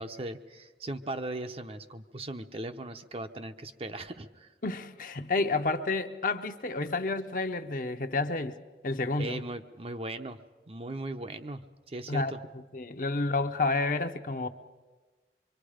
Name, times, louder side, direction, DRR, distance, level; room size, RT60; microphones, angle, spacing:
voice 1, 0.0-4.5 9.2-10.4 10.7-11.6 11.9-12.4, right 2 dB, 35° right, 0.8 m, -38 dB
voice 2, 4.6-8.6 8.8-9.4 12.1-14.5, left 3 dB, 50° left, 0.9 m, -30 dB
24.5 x 24.5 x 5.1 m
head